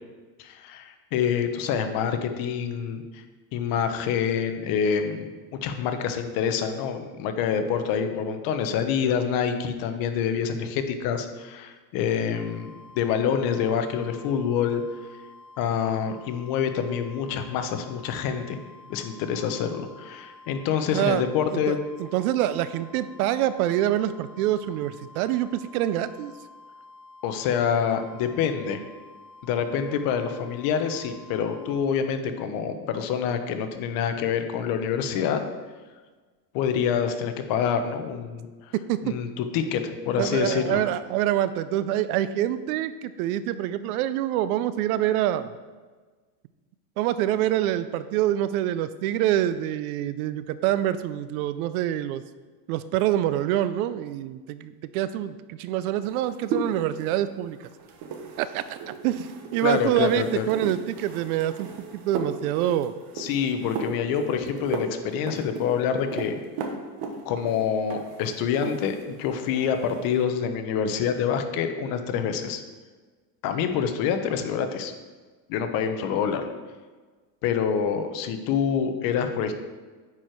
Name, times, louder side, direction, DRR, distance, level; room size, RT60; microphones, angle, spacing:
voice 1, 0.4-3.2 3.5-5.3 5.6-14.8 15.6-18.6 18.9-21.8 27.2-28.8 29.4-35.4 36.5-38.7 39.0-39.8 40.1-40.8 59.6-60.5 63.2-66.4 67.2-72.6 73.4-74.9 75.5-76.4 77.4-79.5, left 7 dB, 45° left, 7 dB, 0.8 m, -26 dB
sound 1, 12.3-31.8, left 3 dB, 10° left, 1.4 m, -49 dB
voice 2, 21.7-26.3 38.9-39.1 40.2-45.5 47.0-52.2 52.7-57.6 58.4-58.8 59.0-62.9, right 12 dB, 60° right, 14 dB, 0.5 m, -26 dB
sound 2, 56.0-69.1 69.4-70.1, right 5 dB, 45° right, 1.1 m, -36 dB
9.6 x 4.6 x 4.5 m, 1.4 s
supercardioid pair, 140°, 49 cm